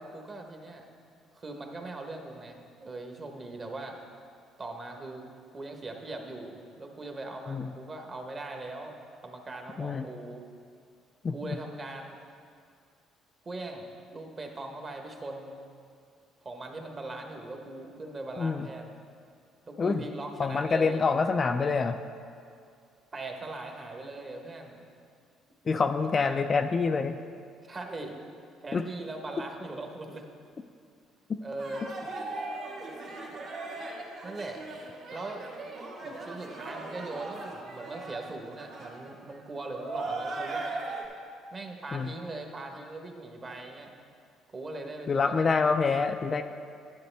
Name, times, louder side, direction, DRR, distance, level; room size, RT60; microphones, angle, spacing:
voice 1, 0.1-0.9 1.3-4.0 4.6-5.2 5.5-8.9 9.2-10.4 11.3-12.2 13.4-15.6 16.4-19.0 19.7-21.0 23.1-24.8 25.8-26.4 27.6-28.2 28.6-30.2 31.4-31.9 34.2-34.6 35.1-35.4 36.0-40.7 41.5-43.9 44.5-45.4, right 2 dB, 30° right, 3 dB, 1.1 m, -40 dB
voice 2, 11.2-11.6 18.4-18.7 19.8-20.1 20.4-22.0 25.6-27.2 28.7-28.8 31.3-31.4 41.9-42.1 45.1-46.4, left 4 dB, 35° left, 7 dB, 0.3 m, -26 dB
sound 1, 31.6-41.0, right 3 dB, 60° right, 1.8 m, -38 dB
10.0 x 9.4 x 3.4 m, 2.3 s
cardioid pair, 105°, 0 cm